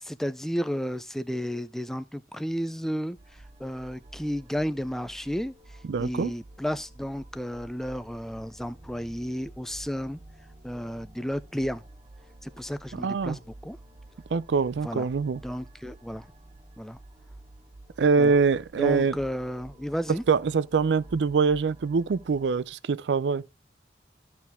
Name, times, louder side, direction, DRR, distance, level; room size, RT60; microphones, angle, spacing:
voice 1, 0.0-10.2 10.6-11.8 12.4-13.8 14.8-15.1 15.4-16.3 16.8-17.0 18.2-18.3 18.8-20.2, equal, ahead, 0.4 m, -32 dB
sound 1, 3.2-22.6, right 1 dB, 30° right, 0.9 m, -50 dB
voice 2, 5.9-6.3 12.9-13.4 14.3-15.4 18.0-19.2 20.3-23.5, right 5 dB, 85° right, 0.4 m, -24 dB
13.5 x 4.7 x 3.5 m
head